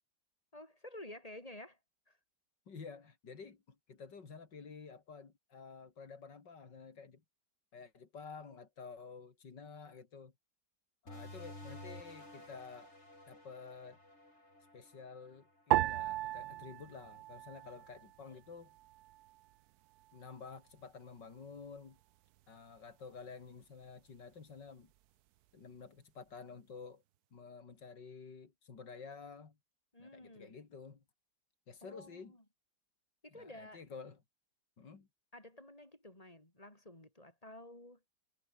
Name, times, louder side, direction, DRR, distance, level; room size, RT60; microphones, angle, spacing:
voice 1, 0.5-1.8 2.1-2.2 29.9-30.5 31.8-32.4 33.2-33.8 35.3-38.0, left 1 dB, 20° left, 5.0 m, -52 dB
voice 2, 2.7-7.2 7.7-10.3 11.0-12.9 13.3-14.0 14.7-18.7 20.1-22.0 22.5-24.9 25.5-27.0 27.3-29.6 30.0-31.0 31.7-32.3 33.3-34.2 34.8-35.1, left 5 dB, 70° left, 3.4 m, -51 dB
sound 1, 11.1-16.3, left 1 dB, 35° left, 8.3 m, -53 dB
sound 2, 15.7-18.2 18.5-19.4 20.0-20.4, right 15 dB, 70° right, 1.0 m, -36 dB
omnidirectional pair, 1.9 m